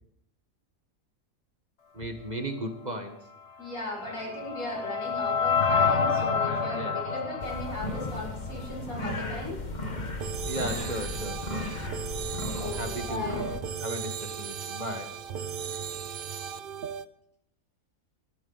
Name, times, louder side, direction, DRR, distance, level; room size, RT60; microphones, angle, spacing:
voice 1, 1.9-3.2 4.0-4.4 4.8-5.0 6.0-7.0 10.4-11.7 12.6-13.4 13.8-15.1, right 1 dB, 30° right, 5 dB, 1.4 m, -37 dB
voice 2, 3.6-9.6 12.6-13.5, left 1 dB, 80° left, -5 dB, 6.1 m, -37 dB
sound 1, 3.7-8.8, left 5 dB, 55° left, 1.5 m, -28 dB
sound 2, 7.4-13.6, left 2 dB, 35° left, 1.4 m, -35 dB
sound 3, 10.2-17.0, right 7 dB, 55° right, 0.7 m, -36 dB
20.5 x 13.0 x 4.0 m, 0.76 s
omnidirectional pair, 1.5 m